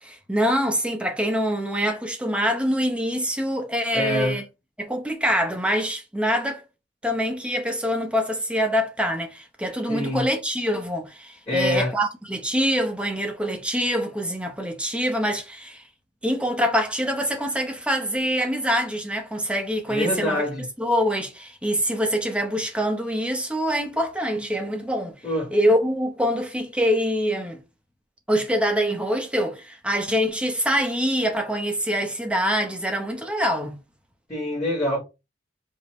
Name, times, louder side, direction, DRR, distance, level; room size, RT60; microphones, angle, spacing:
voice 1, 0.0-4.4 4.8-6.7 7.0-15.8 16.2-20.4 20.8-25.2 25.5-27.6 28.3-33.8, equal, 5° right, 0.7 m, -25 dB
voice 2, 3.9-4.4 9.9-10.3 11.5-11.9 19.9-20.6 25.2-25.5 34.3-35.0, left 1 dB, 15° left, 1.5 m, -25 dB
5.0 x 2.7 x 3.0 m
head